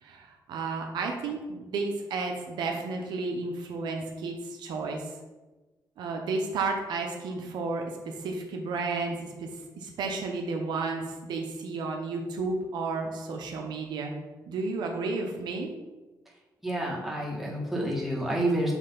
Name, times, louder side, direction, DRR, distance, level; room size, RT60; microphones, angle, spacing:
voice 1, 0.0-5.0 6.0-9.5 9.8-14.1 14.5-15.7, right 3 dB, 85° right, 2 dB, 0.9 m, -32 dB
voice 2, 16.6-18.7, right 1 dB, 5° right, -3 dB, 1.9 m, -29 dB
6.3 x 3.3 x 5.5 m, 1.2 s
cardioid pair, 75°, 7 cm